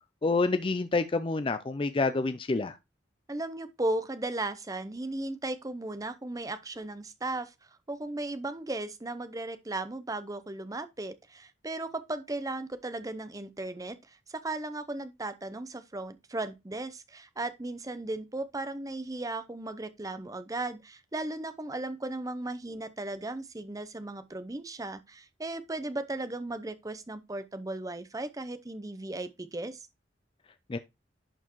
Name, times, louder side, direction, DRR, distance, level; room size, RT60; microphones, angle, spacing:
voice 1, 0.2-2.8 30.7-30.8, left 3 dB, 30° left, 0.4 m, -28 dB
voice 2, 3.3-7.5 7.9-29.8, right 2 dB, 20° right, 0.7 m, -36 dB
11.0 x 4.4 x 3.0 m
head